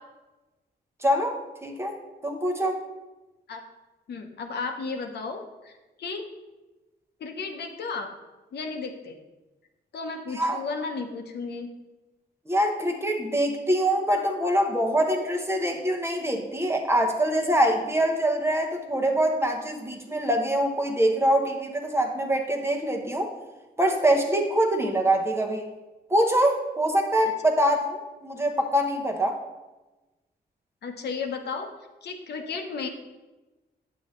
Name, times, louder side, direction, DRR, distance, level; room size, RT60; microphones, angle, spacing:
voice 1, 1.0-1.3 1.6-1.9 2.2-2.8 10.3-10.6 12.5-23.3 23.8-25.6 26.1-29.4, right 1 dB, 15° right, 2 dB, 0.9 m, -24 dB
voice 2, 4.1-6.2 7.2-8.1 8.5-9.2 9.9-11.7 30.8-31.7 32.0-32.9, left 4 dB, 70° left, 4 dB, 1.0 m, -34 dB
9.4 x 7.9 x 3.2 m, 1.1 s
wide cardioid pair, 145°, 18 cm